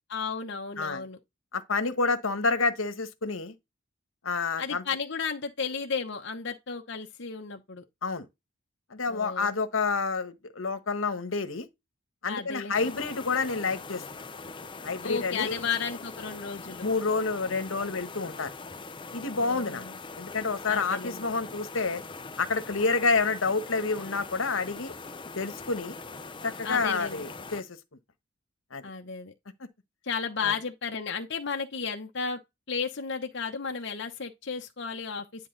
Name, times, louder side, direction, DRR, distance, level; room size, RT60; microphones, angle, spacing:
voice 1, 0.1-1.2 4.6-7.8 9.1-9.5 12.3-12.8 15.0-16.9 19.3-20.0 20.7-21.3 26.6-27.2 28.8-29.3 30.0-32.4 32.7-35.5, left 5 dB, 60° left, 0.9 m, -33 dB
voice 2, 1.5-3.5 4.2-4.8 8.0-8.3 8.9-11.7 12.2-14.2 14.8-15.6 16.8-18.5 19.1-19.8 20.2-22.0 22.4-24.9 25.3-26.0 26.4-27.7 28.7-28.8 30.4-30.5, left 4 dB, 80° left, 1.2 m, -29 dB
sound 1, 12.7-27.6, left 4 dB, 25° left, 0.7 m, -42 dB
10.0 x 3.6 x 3.8 m
head